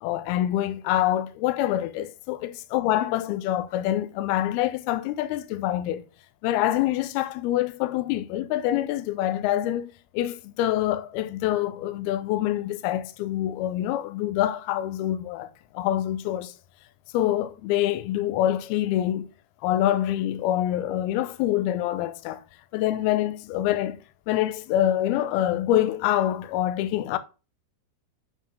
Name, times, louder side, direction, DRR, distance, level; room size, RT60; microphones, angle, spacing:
voice 1, 0.0-6.1 6.4-16.5 17.1-19.3 19.6-22.4 22.7-24.0 24.3-27.2, left 13 dB, 90° left, 2.2 m, -26 dB
9.2 x 4.4 x 3.3 m
omnidirectional pair, 5.1 m